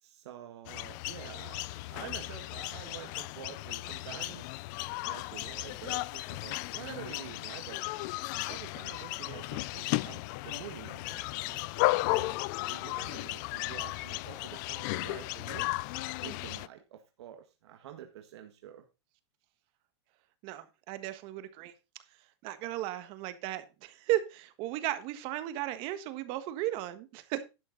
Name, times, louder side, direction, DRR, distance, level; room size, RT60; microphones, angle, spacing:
voice 1, 0.0-4.6 5.0-7.8 8.5-11.7 12.1-12.4 12.7-15.7 16.2-18.8, right 10 dB, 75° right, 5 dB, 1.7 m, -47 dB
sound 1, 0.7-16.7, left 21 dB, 45° left, 0.4 m, -35 dB
voice 2, 20.4-21.7 22.4-27.4, right 14 dB, 40° right, 12 dB, 1.4 m, -35 dB
11.5 x 8.1 x 3.9 m, 0.27 s
supercardioid pair, 150°, 14 cm